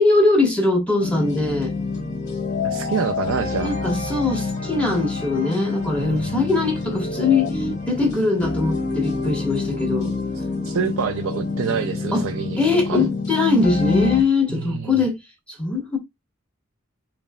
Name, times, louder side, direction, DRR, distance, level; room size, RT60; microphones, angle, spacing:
voice 1, 0.0-1.7 3.6-10.1 12.1-12.2 12.6-15.2 15.6-16.0, left 3 dB, 5° left, 1.3 m, -21 dB
sound 1, 1.0-14.2, left 3 dB, 40° left, 1.2 m, -27 dB
voice 2, 2.6-3.8 5.9-6.3 10.6-12.6 12.9-13.0 14.5-15.1, right 6 dB, 85° right, 0.4 m, -27 dB
4.2 x 3.2 x 2.2 m
head